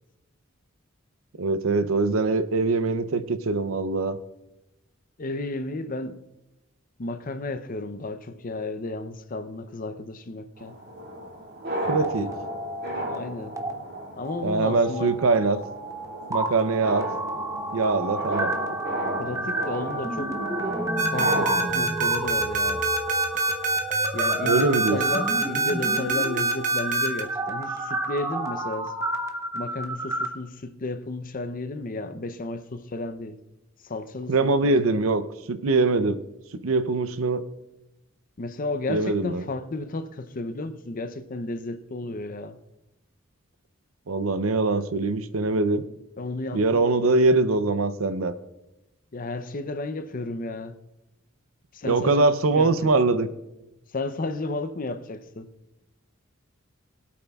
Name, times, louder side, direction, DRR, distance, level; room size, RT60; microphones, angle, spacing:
voice 1, 1.4-4.2 11.9-12.3 14.4-15.6 16.3-17.1 17.7-18.5 24.4-25.0 34.3-35.2 35.5-36.2 36.6-37.4 38.9-39.4 44.1-45.8 46.5-48.3 51.8-53.3, right 3 dB, 80° right, 0.6 m, -23 dB
voice 2, 5.2-6.2 7.0-10.7 13.0-13.6 14.2-15.2 19.2-20.3 21.1-22.8 24.1-28.9 29.5-33.4 33.8-35.0 38.4-42.6 46.2-47.0 49.1-50.7 51.7-52.3 52.5-52.9 53.9-55.5, left 2 dB, 40° left, 0.6 m, -33 dB
sound 1, 10.6-21.8, right 1 dB, 55° right, 2.1 m, -33 dB
sound 2, 11.8-13.2 13.4-13.7 14.2-30.3, right 2 dB, 15° right, 0.9 m, -31 dB
sound 3, 21.0-27.2, right 3 dB, 40° right, 1.1 m, -24 dB
22.5 x 8.5 x 2.4 m
head